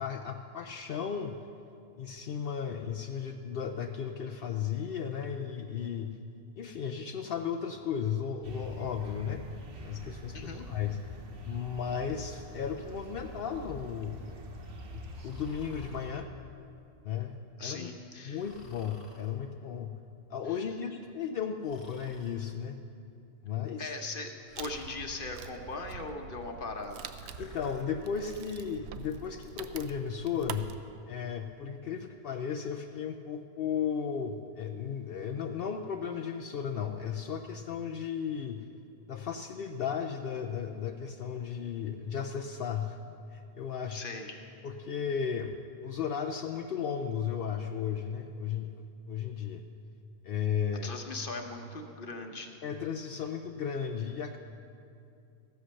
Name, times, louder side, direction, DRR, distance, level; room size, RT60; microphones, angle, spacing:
voice 1, 0.0-1.5 2.0-6.2 6.6-9.4 9.8-11.0 11.4-14.3 14.9-16.3 17.0-17.9 18.2-19.9 20.3-22.8 23.4-23.9 27.4-30.7 31.1-38.7 39.1-43.0 43.3-44.0 44.6-45.6 45.8-49.6 50.2-50.9 52.6-54.4, left 7 dB, 70° left, 4 dB, 0.5 m, -35 dB
sound 1, 8.4-16.1, right 1 dB, 45° right, 1.0 m, -45 dB
voice 2, 10.3-10.7 17.6-18.4 20.5-20.6 23.8-27.0 43.9-44.4 50.8-52.5, left 3 dB, 45° left, 4 dB, 0.9 m, -39 dB
Breathing, 15.1-16.0 18.4-19.3 21.6-22.4 24.5-25.0 27.2-27.9, left 2 dB, 85° left, 2.0 m, -54 dB
Wood, 24.6-30.8, right 8 dB, 65° right, 0.7 m, -45 dB
14.5 x 8.1 x 6.4 m, 2.5 s
omnidirectional pair, 1.6 m